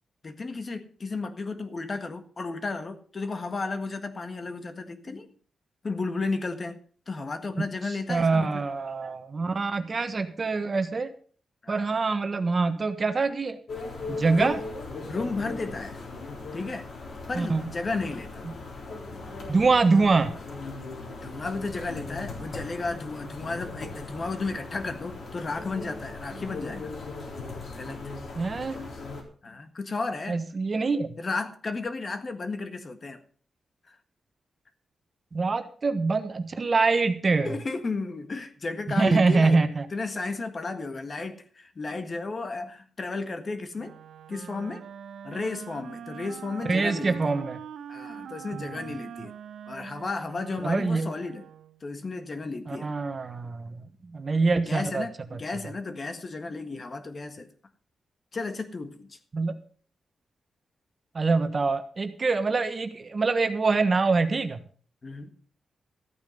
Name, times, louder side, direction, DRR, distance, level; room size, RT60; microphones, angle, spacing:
voice 1, 0.2-5.3 5.8-6.8 7.1-8.6 11.6-11.9 14.3-14.6 15.1-16.0 16.5-16.9 17.3-18.5 21.2-27.0 27.8-28.1 29.4-30.4 31.2-33.2 33.9-34.0 37.4-39.6 39.9-44.0 44.3-44.8 45.2-47.2 47.9-49.3 49.7-51.5 51.8-52.9 54.7-57.5 58.3-59.2 65.0-65.3, left 3 dB, 35° left, 8 dB, 1.6 m, -33 dB
voice 2, 8.1-11.1 11.7-13.6 14.1-14.6 17.3-17.7 19.5-20.3 28.3-28.8 30.3-31.2 35.3-37.6 39.0-39.9 46.7-47.6 48.5-48.7 50.6-51.1 52.7-55.0 55.3-55.4 59.3-59.6 61.1-64.6, right 4 dB, 40° right, 9 dB, 1.3 m, -25 dB
sound 1, 13.7-29.2, left 3 dB, 65° left, 3.8 m, -39 dB
Wind instrument woodwind instrument, 43.8-51.8, right 8 dB, 85° right, 0.9 m, -43 dB
14.0 x 9.1 x 5.3 m, 0.43 s
wide cardioid pair, 115°, 0 cm